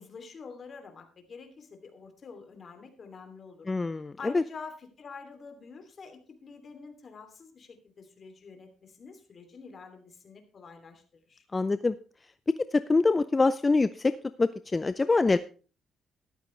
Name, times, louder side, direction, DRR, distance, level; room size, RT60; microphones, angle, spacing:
voice 1, 0.0-3.7 4.2-11.0 11.3-11.4, left 5 dB, 45° left, 6 dB, 2.9 m, -47 dB
voice 2, 3.7-4.4 11.5-11.9 12.7-14.1 14.4-15.4, left 3 dB, 25° left, 13 dB, 0.5 m, -24 dB
13.5 x 12.0 x 3.3 m, 0.37 s
cardioid pair, 90°, 0 cm